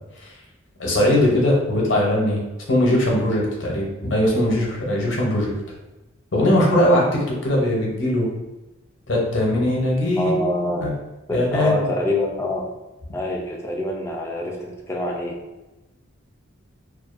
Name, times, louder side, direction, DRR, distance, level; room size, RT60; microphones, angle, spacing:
voice 1, 0.8-2.4 2.7-5.5 6.3-8.3 9.1-10.5 10.7-10.9 11.3-11.9, left 1 dB, 60° left, -3 dB, 0.7 m, -20 dB
voice 2, 10.2-10.9 11.3-12.7 13.1-15.4, left 1 dB, 15° left, -1 dB, 0.3 m, -25 dB
2.4 x 2.2 x 2.4 m, 1.1 s
head